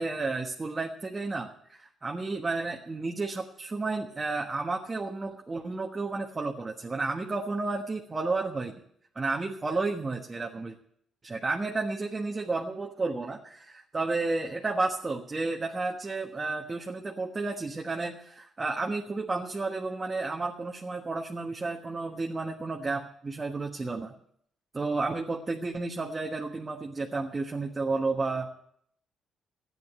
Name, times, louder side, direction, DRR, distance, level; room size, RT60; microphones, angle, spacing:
voice 1, 0.0-8.7 9.1-10.7 11.2-24.1 24.7-28.5, right 3 dB, 25° right, 1 dB, 1.3 m, -32 dB
13.0 x 9.4 x 8.0 m, 0.69 s
cardioid pair, 90°, 0 cm